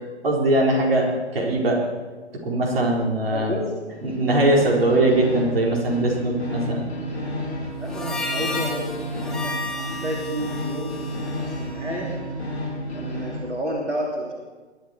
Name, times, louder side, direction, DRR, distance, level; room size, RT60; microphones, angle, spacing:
voice 1, 0.2-1.1 1.3-1.8 2.4-3.5 4.0-6.9, right 1 dB, 55° right, -1 dB, 4.1 m, -21 dB
voice 2, 3.3-3.7 7.8-12.1 12.9-14.3, equal, 85° right, -2 dB, 3.2 m, -31 dB
sound 1, 3.9-13.5, equal, 65° left, 4.3 m, -31 dB
Harmonica, 7.8-12.5, left 2 dB, ahead, 0.5 m, -33 dB
21.5 x 10.5 x 4.8 m, 1.3 s
figure-of-eight pair, 125°, 35 cm